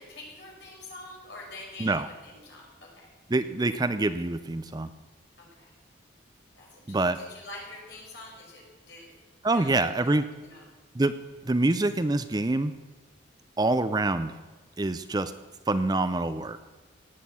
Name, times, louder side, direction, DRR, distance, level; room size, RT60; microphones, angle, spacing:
voice 1, 0.0-3.1 5.4-5.7 6.6-9.1 9.5-10.1 10.4-10.7, left 2 dB, 60° left, -2 dB, 5.7 m, -46 dB
voice 2, 3.3-4.9 6.9-7.2 9.4-10.2 10.9-11.2 11.4-12.7 13.6-14.4 14.8-15.3 15.7-16.6, right 2 dB, 20° right, 12 dB, 0.5 m, -26 dB
17.5 x 8.2 x 8.4 m, 1.3 s
head